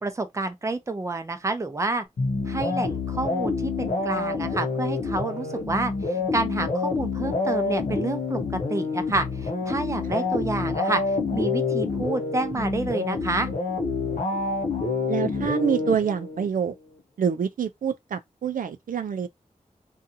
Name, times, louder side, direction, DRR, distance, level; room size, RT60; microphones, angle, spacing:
voice 1, 0.0-2.0 2.5-8.4 8.7-11.0 11.3-13.5, right 2 dB, 20° right, 0.5 m, -29 dB
sound 1, 2.2-16.5, left 4 dB, 65° left, 0.7 m, -27 dB
voice 2, 15.1-16.7 17.2-19.3, right 7 dB, 80° right, 0.4 m, -26 dB
2.6 x 2.3 x 2.6 m
wide cardioid pair, 105°, 14 cm